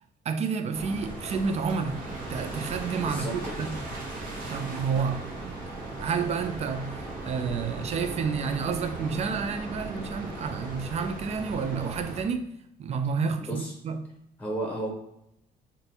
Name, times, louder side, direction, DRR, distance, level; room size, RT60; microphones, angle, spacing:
voice 1, 0.2-3.8 4.5-5.3 6.0-12.5 12.8-14.1, right 5 dB, 40° right, 0.4 m, -30 dB
sound 1, 0.7-12.2, right 2 dB, 55° right, 1.2 m, -37 dB
voice 2, 3.0-3.6 13.4-13.7 14.4-14.9, right 1 dB, 10° left, 0.9 m, -33 dB
3.7 x 2.6 x 2.8 m
cardioid pair, 110°, 17 cm